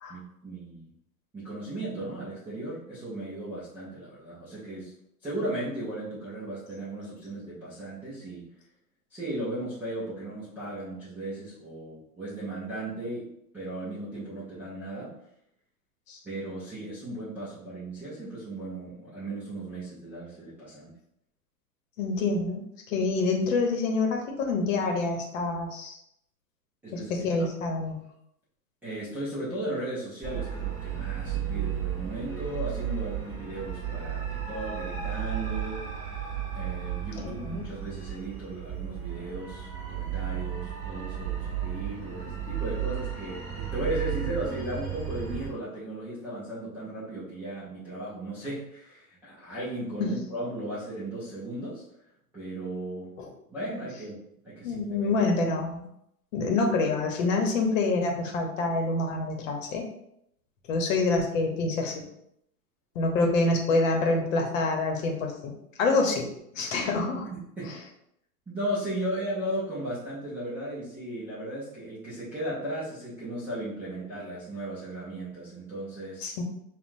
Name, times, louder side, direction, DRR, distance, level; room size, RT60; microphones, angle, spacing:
voice 1, 0.1-0.9 1.3-4.9 5.2-8.5 9.1-15.2 16.2-20.9 26.8-27.1 27.4-27.5 28.8-35.9 36.5-51.8 52.3-53.2 53.5-54.2 54.4-55.1 67.3-67.8 68.5-76.3, right 1 dB, 5° right, -12 dB, 0.4 m, -36 dB
voice 2, 22.0-26.0 26.9-28.0 37.2-37.6 50.0-50.2 53.2-53.3 54.6-55.9 56.3-59.8 60.7-62.0 62.9-65.5 65.8-67.3 76.2-76.4, left 3 dB, 55° left, 2 dB, 1.0 m, -27 dB
sound 1, 30.2-45.5, right 9 dB, 25° right, 1.5 m, -34 dB
5.5 x 2.4 x 2.6 m, 0.76 s
hypercardioid pair, 130°, 47 cm